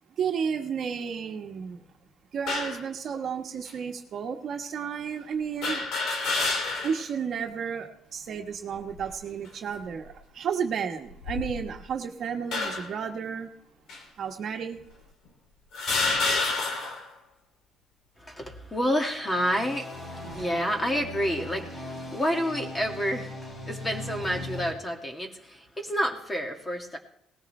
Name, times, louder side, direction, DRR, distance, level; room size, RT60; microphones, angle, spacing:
voice 1, 0.2-1.8 2.3-5.8 6.8-13.5 14.2-14.8, right 7 dB, 50° right, 4 dB, 1.3 m, -32 dB
sound 1, 2.5-2.8 3.7-3.8 5.6-7.1 7.5-7.6 8.7-9.2 9.9-10.1 11.1-11.9 12.5-13.0 13.9-14.0 14.9-15.0 15.7-17.1, left 3 dB, 70° left, 2.9 m, -29 dB
voice 2, 18.2-27.0, equal, 15° left, 2 dB, 2.1 m, -29 dB
sound 2, 19.0-24.7, left 1 dB, 40° left, 5.3 m, -39 dB
19.0 x 14.5 x 3.3 m, 0.75 s
cardioid pair, 125°, 0 cm